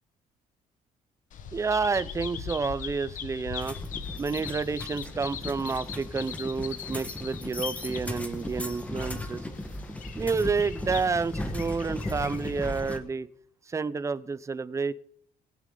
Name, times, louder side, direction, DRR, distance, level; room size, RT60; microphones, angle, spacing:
Bird vocalization bird call bird song, 1.3-12.7, left 8 dB, 65° left, 1.4 m, -41 dB
voice 1, 1.5-3.8 4.2-9.5 10.1-13.3 13.7-14.9, right 4 dB, 20° right, 16 dB, 0.6 m, -29 dB
sound 1, 3.6-13.0, left 1 dB, 10° left, 1.4 m, -37 dB
20.5 x 9.6 x 3.9 m, 0.68 s
cardioid pair, 135°, 15 cm